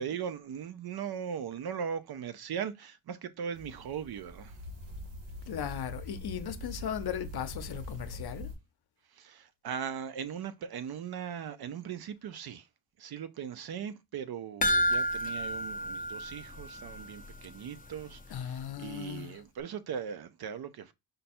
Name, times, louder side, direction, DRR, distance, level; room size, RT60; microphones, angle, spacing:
voice 1, 0.0-4.6 9.1-12.7 13.0-20.9, right 7 dB, 55° right, 0.5 m, -39 dB
sound 1, 3.5-8.5, left 1 dB, 70° right, 1.6 m, -43 dB
voice 2, 5.5-8.5 18.3-19.4, left 9 dB, 55° left, 0.7 m, -37 dB
sound 2, 14.6-17.2 17.4-17.5 18.0-18.1, equal, 20° left, 0.4 m, -30 dB
5.2 x 2.2 x 4.2 m
wide cardioid pair, 135°, 47 cm